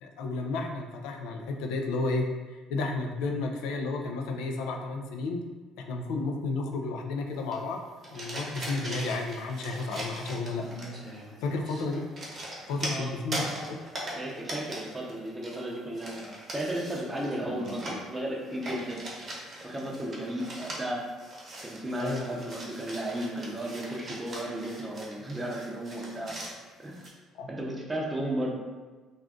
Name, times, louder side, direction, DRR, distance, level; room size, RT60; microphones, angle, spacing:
voice 1, 0.0-5.4 5.8-7.9 8.1-10.6 11.4-12.0 12.7-13.8 22.0-22.3 27.3-27.5, left 3 dB, 85° left, 3 dB, 0.3 m, -32 dB
sound 1, 7.5-27.1, right 1 dB, 40° right, 0.9 m, -40 dB
voice 2, 14.1-19.0 19.6-21.1 21.6-26.4 26.8-27.0 27.5-28.5, right 1 dB, 15° right, -2 dB, 0.6 m, -34 dB
2.5 x 2.4 x 3.5 m, 1.3 s
cardioid pair, 105°, 0 cm